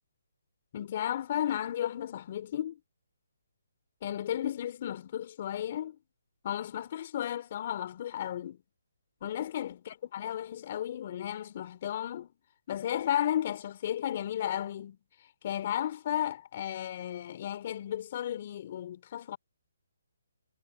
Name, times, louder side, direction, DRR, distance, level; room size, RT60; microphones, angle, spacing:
voice 1, 0.7-2.8 4.0-6.0 6.4-8.6 9.2-12.3 12.7-15.0 15.4-19.4, left 11 dB, 45° left, 4.0 m, -34 dB
hypercardioid pair, 150°, 0 cm